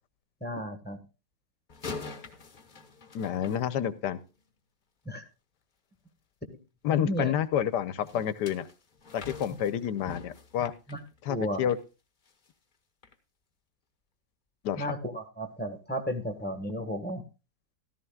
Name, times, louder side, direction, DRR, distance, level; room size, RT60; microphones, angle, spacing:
voice 1, 0.4-1.0 5.0-5.2 6.9-7.3 10.9-11.0 11.3-11.6 14.8-17.2, equal, 5° left, 6 dB, 1.2 m, -33 dB
sound 1, 1.7-4.3 8.1-11.8 12.3-12.5 13.0-13.1, left 4 dB, 35° left, 1.0 m, -44 dB
voice 2, 3.1-4.2 6.8-8.7 9.1-10.7 11.2-11.8 14.6-14.9, left 9 dB, 70° left, 15 dB, 1.3 m, -29 dB
14.0 x 13.5 x 2.3 m, 0.29 s
omnidirectional pair, 1.9 m